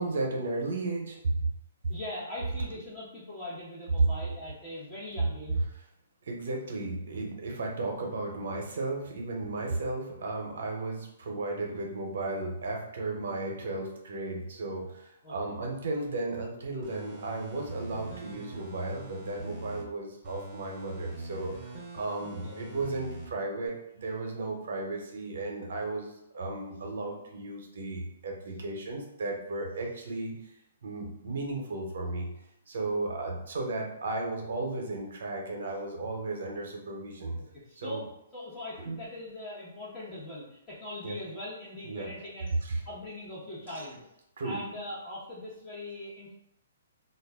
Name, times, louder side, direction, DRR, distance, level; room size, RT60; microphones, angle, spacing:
voice 1, 0.0-1.4 4.0-4.1 6.3-30.3 30.8-32.3 32.7-37.4 37.8-38.0 38.9-39.0 41.0-41.2 41.8-42.1 42.6-42.8 44.4-44.6, right 2 dB, 65° right, 1 dB, 0.7 m, -34 dB
voice 2, 1.9-5.6 15.2-15.5 22.2-22.6 37.3-42.6 42.8-44.0 44.4-46.3, left 1 dB, 25° left, -10 dB, 0.9 m, -41 dB
sound 1, 16.8-19.8 20.2-23.3 23.7-23.8, right 1 dB, 20° right, 0.7 m, -43 dB
2.3 x 2.0 x 3.4 m, 0.80 s
hypercardioid pair, 140°, 0 cm